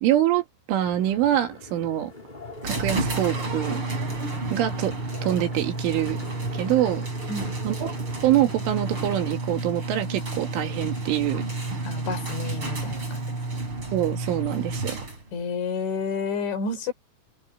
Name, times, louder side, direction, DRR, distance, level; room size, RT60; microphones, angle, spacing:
voice 1, 0.0-2.1 2.6-4.0 4.5-4.9 5.2-6.2 6.5-7.1 7.6-7.9 8.2-11.4 13.9-15.0, right 12 dB, 75° right, 4.6 m, -25 dB
sound 1, 0.8-9.3, left 2 dB, 15° left, 1.5 m, -43 dB
sound 2, 2.6-15.4, right 2 dB, 25° right, 7.3 m, -30 dB
voice 2, 11.9-13.3 15.3-16.9, left 4 dB, 65° left, 6.4 m, -30 dB
open air
omnidirectional pair, 5.7 m